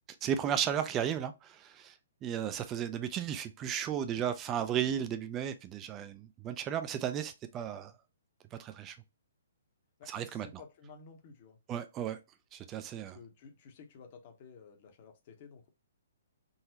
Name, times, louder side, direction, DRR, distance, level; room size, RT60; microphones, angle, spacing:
voice 1, 0.2-7.9 8.5-9.0 10.1-10.5 11.7-12.2 12.5-13.2, right 9 dB, 25° right, 0.3 m, -34 dB
voice 2, 10.0-11.6 13.0-15.7, left 5 dB, 45° left, 0.8 m, -53 dB
3.8 x 2.1 x 2.7 m
hypercardioid pair, 135°, 0 cm